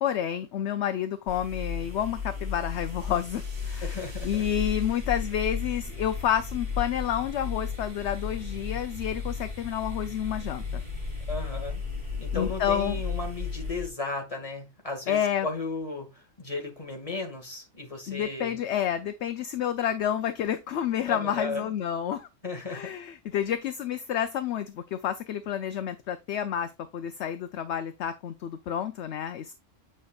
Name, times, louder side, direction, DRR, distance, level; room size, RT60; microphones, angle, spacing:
voice 1, 0.0-10.8 12.3-13.0 15.1-15.5 18.1-22.3 22.7-29.5, left 10 dB, 65° left, 0.8 m, -29 dB
sound 1, 1.3-13.9, left 5 dB, 25° right, 2.7 m, -34 dB
voice 2, 3.8-4.4 11.3-11.8 12.2-18.6 21.1-21.7 22.4-22.9, left 3 dB, 25° left, 2.0 m, -35 dB
8.7 x 5.4 x 2.4 m
omnidirectional pair, 1.4 m